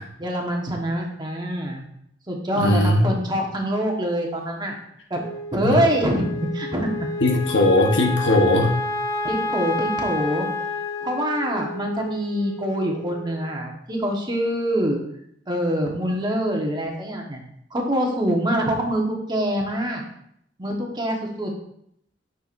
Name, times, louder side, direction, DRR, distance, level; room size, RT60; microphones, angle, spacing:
voice 1, 0.2-1.8 2.3-4.8 5.1-5.2 5.5-6.9 9.2-10.5 11.0-15.0 15.5-17.4 17.7-20.0 20.6-21.5, equal, 25° right, 0 dB, 1.3 m, -25 dB
voice 2, 2.6-3.0 5.6-5.8 7.2-8.8, left 1 dB, 75° left, 2 dB, 1.1 m, -19 dB
Wind instrument woodwind instrument, 5.2-13.6, left 2 dB, 20° left, 0.9 m, -30 dB
9.0 x 6.3 x 2.6 m, 0.72 s
head